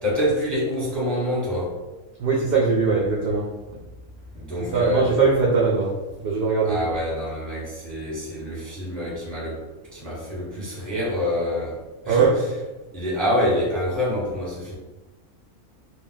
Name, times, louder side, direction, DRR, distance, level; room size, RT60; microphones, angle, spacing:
voice 1, 0.0-1.8 4.3-5.1 6.6-9.6 9.9-11.8 12.0-12.3 12.9-14.7, left 1 dB, ahead, -6 dB, 0.7 m, -26 dB
voice 2, 2.2-3.5 4.6-5.9 6.2-6.8 12.1-12.3, right 4 dB, 65° right, -4 dB, 0.6 m, -20 dB
2.4 x 2.2 x 3.8 m, 1.1 s
omnidirectional pair, 1.5 m